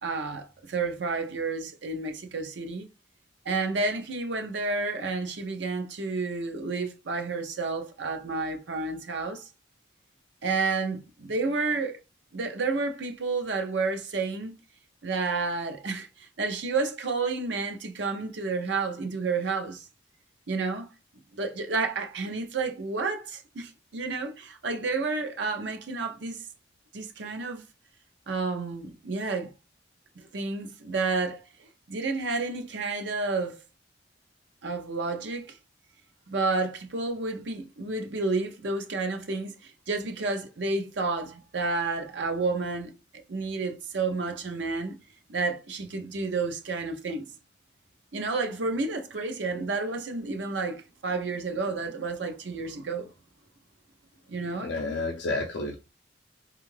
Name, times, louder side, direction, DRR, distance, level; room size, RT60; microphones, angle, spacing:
voice 1, 0.0-2.9 3.5-9.5 10.4-12.0 12.3-14.6 15.0-19.8 20.5-20.9 21.3-26.4 26.9-27.6 28.3-29.5 30.2-31.5 31.9-33.6 34.6-35.6 36.3-42.9 43.3-45.0 45.3-47.3 48.1-53.1 54.3-54.7, right 3 dB, 65° right, 0.6 m, -30 dB
voice 2, 54.6-55.8, left 2 dB, 60° left, 0.4 m, -30 dB
3.5 x 2.4 x 3.1 m
head